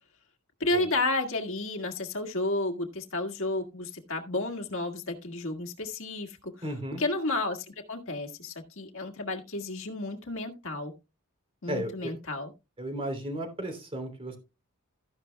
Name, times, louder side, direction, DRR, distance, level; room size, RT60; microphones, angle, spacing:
voice 1, 0.6-6.7 7.0-10.9 11.6-12.5, left 2 dB, 60° left, 1.8 m, -32 dB
voice 2, 6.6-7.0 11.7-12.1 12.8-14.4, equal, 25° right, 3.1 m, -34 dB
13.5 x 10.5 x 2.2 m
head